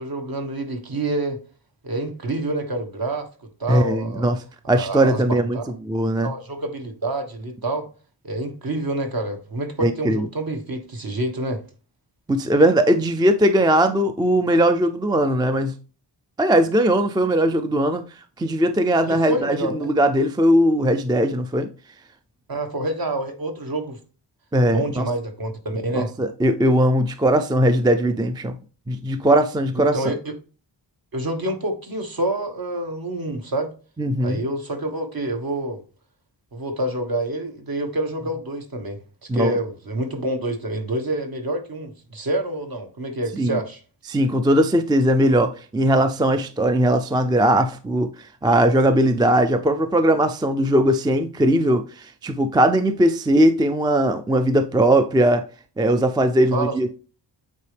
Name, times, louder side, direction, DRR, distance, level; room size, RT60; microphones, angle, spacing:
voice 1, 0.0-1.4 1.8-3.3 3.6-4.3 4.7-5.6 6.2-7.9 8.2-11.6 19.0-19.9 22.5-24.0 24.7-26.1 29.7-30.3 31.1-33.7 34.2-35.8 36.5-39.0 39.3-43.8 56.5-56.9, right 1 dB, 50° right, 1.3 m, -27 dB
voice 2, 3.7-4.4 4.7-5.6 5.8-6.3 9.8-10.3 12.3-15.8 16.4-18.0 18.4-21.7 24.5-25.1 25.9-28.6 28.9-30.1 34.0-34.4 39.3-39.6 43.3-43.6 44.1-48.1 48.4-55.5 55.8-56.9, right 1 dB, 10° right, 0.3 m, -19 dB
8.4 x 4.2 x 3.3 m
wide cardioid pair, 160°, 45 cm